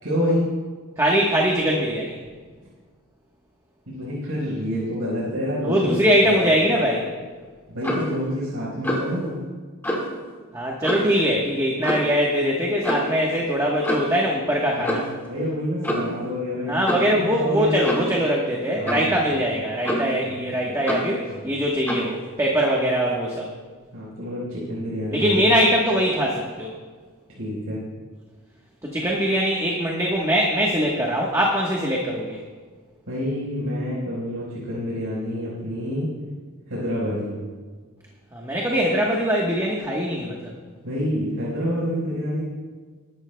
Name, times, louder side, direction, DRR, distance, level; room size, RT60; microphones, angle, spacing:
voice 1, 0.0-0.5 3.9-5.9 6.2-6.4 7.7-9.4 14.7-15.0 15.3-16.8 17.0-17.9 18.8-19.1 20.2-20.3 20.7-20.8 21.3-21.4 23.9-25.4 27.3-27.8 33.1-36.1 36.7-37.3 40.8-42.4, equal, 85° right, -7 dB, 4.3 m, -27 dB
voice 2, 1.0-2.2 5.6-7.1 10.5-15.1 16.7-23.5 25.1-26.7 28.8-32.4 38.3-40.5, equal, 15° right, -2 dB, 1.1 m, -22 dB
Clock, 7.8-8.1 8.8-9.1 9.8-10.1 10.8-11.2 11.8-12.1 12.8-13.1 13.8-14.2 14.8-15.2 15.8-16.2 16.9-17.1 17.8-18.1 18.9-19.1 19.8-20.2 20.9-21.1 21.9-22.1, equal, 10° left, 1.8 m, -26 dB
20.0 x 12.0 x 2.2 m, 1.5 s
head